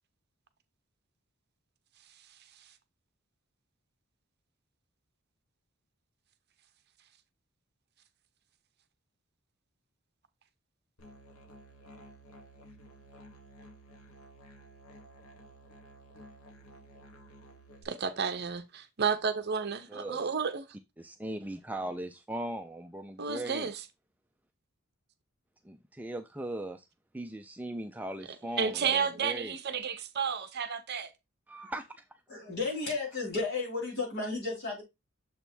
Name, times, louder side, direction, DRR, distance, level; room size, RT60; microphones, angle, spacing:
Musical instrument, 11.0-17.8, right 1 dB, 85° left, 1.4 m, -53 dB
voice 1, 17.8-20.7 23.2-23.8 28.6-31.1, right 6 dB, 50° right, 0.7 m, -31 dB
voice 2, 19.9-20.2 21.0-23.7 25.6-26.9 27.1-29.5 31.5-32.1, right 1 dB, 5° right, 0.3 m, -39 dB
voice 3, 32.3-34.8, left 3 dB, 50° left, 4.5 m, -33 dB
7.0 x 3.4 x 4.3 m
head